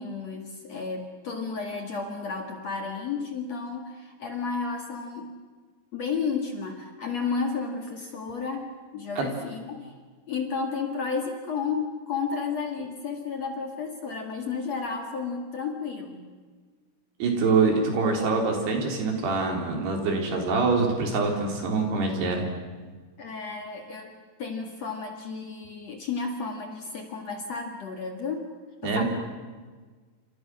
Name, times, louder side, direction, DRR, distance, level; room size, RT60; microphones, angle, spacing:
voice 1, 0.0-5.4 5.9-9.9 10.3-16.2 23.2-24.1 24.4-28.5 28.8-29.0, left 5 dB, 50° left, 3 dB, 2.2 m, -32 dB
voice 2, 17.2-22.5 28.8-29.0, right 4 dB, 55° right, 2 dB, 5.8 m, -25 dB
29.5 x 28.0 x 6.3 m, 1.4 s
omnidirectional pair, 5.8 m